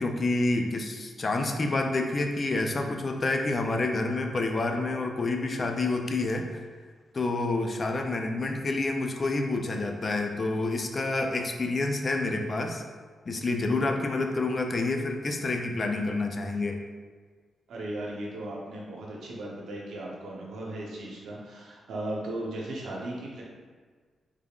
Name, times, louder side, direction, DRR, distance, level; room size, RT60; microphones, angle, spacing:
voice 1, 0.0-6.6 7.1-12.8 13.3-16.8, left 2 dB, 40° left, 4 dB, 0.4 m, -28 dB
voice 2, 17.7-23.4, right 1 dB, 90° right, -3 dB, 0.8 m, -36 dB
3.5 x 3.5 x 2.3 m, 1.5 s
cardioid pair, 80°, 0 cm